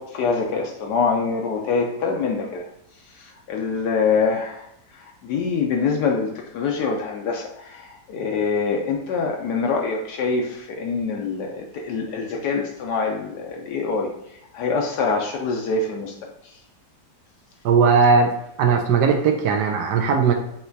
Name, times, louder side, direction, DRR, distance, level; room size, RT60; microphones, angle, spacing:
voice 1, 0.0-2.7 3.1-4.7 4.9-14.1 14.5-16.3, left 4 dB, 80° left, 1 dB, 1.2 m, -25 dB
voice 2, 17.6-18.3 18.6-20.3, right 5 dB, 80° right, 3 dB, 1.2 m, -18 dB
5.5 x 2.9 x 2.6 m, 0.80 s
omnidirectional pair, 1.8 m